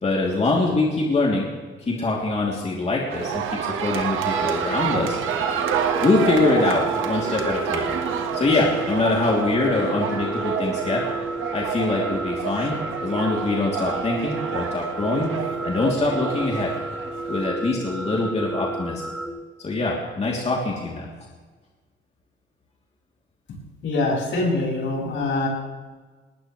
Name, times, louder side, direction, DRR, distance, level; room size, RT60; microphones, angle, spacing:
voice 1, 0.0-1.5 1.9-3.4 3.8-5.2 6.0-7.9 8.3-11.0 11.5-15.3 15.6-16.7 17.3-19.0 19.6-21.1, left 3 dB, 35° left, -3 dB, 3.2 m, -23 dB
sound 1, 3.1-17.5, right 8 dB, 85° right, 1.7 m, -28 dB
sound 2, 4.3-19.3, right 2 dB, 5° right, 2.1 m, -32 dB
voice 2, 23.8-25.5, left 2 dB, 75° left, -2 dB, 6.4 m, -24 dB
19.5 x 19.0 x 3.3 m, 1.4 s
cardioid pair, 90°, 20 cm